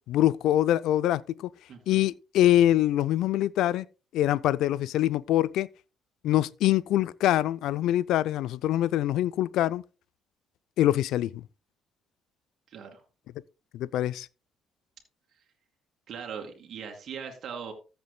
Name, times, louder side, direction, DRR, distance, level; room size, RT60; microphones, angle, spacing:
voice 1, 0.1-1.5 1.9-3.9 4.1-5.7 6.2-9.8 10.8-11.4 13.7-14.3, left 13 dB, 65° left, 0.4 m, -24 dB
voice 2, 1.7-2.0 12.7-13.0 16.1-17.7, right 7 dB, 55° right, 2.5 m, -40 dB
14.5 x 7.9 x 2.3 m
hypercardioid pair, 50°, 0 cm